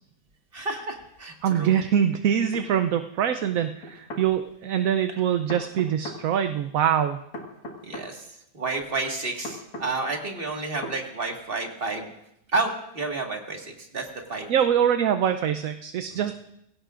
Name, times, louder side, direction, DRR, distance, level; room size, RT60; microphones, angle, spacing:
voice 1, 0.5-1.7 7.8-8.3 8.5-12.1 12.5-14.5 16.1-16.3, right 3 dB, 35° right, 1 dB, 2.0 m, -30 dB
voice 2, 1.4-7.2 14.5-16.3, right 9 dB, 65° right, 8 dB, 0.9 m, -24 dB
sound 1, 2.5-2.7 3.8-4.3 5.5-6.2 7.3-8.1 9.4-9.9 10.8-11.0, left 1 dB, 65° left, 2.4 m, -37 dB
23.0 x 16.5 x 2.5 m, 0.79 s
omnidirectional pair, 1.8 m